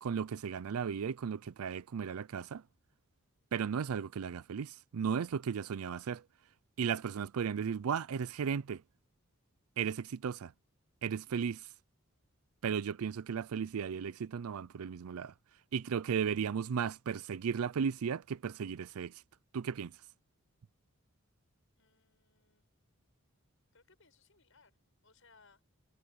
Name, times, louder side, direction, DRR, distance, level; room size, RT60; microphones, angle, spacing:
voice 1, 0.0-2.6 3.5-6.2 6.8-8.8 9.8-10.5 11.0-11.7 12.6-15.3 15.7-19.2 19.5-19.9, right 7 dB, 90° right, 0.4 m, -35 dB
voice 2, 21.8-22.6 23.7-24.8 25.0-25.6, left 4 dB, 65° left, 6.1 m, -65 dB
head